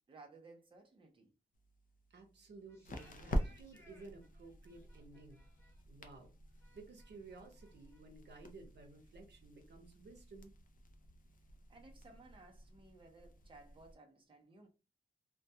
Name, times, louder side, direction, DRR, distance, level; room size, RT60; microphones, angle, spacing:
voice 1, 0.0-1.3 11.7-14.7, right 3 dB, 30° right, 0.5 m, -59 dB
sound 1, 1.5-13.9, equal, 55° left, 0.4 m, -46 dB
voice 2, 2.1-5.4 5.9-6.3 6.7-10.5, right 3 dB, 85° right, 0.7 m, -55 dB
sound 2, 2.6-8.0, equal, 15° left, 0.7 m, -68 dB
2.2 x 2.2 x 2.7 m
wide cardioid pair, 160°, 17 cm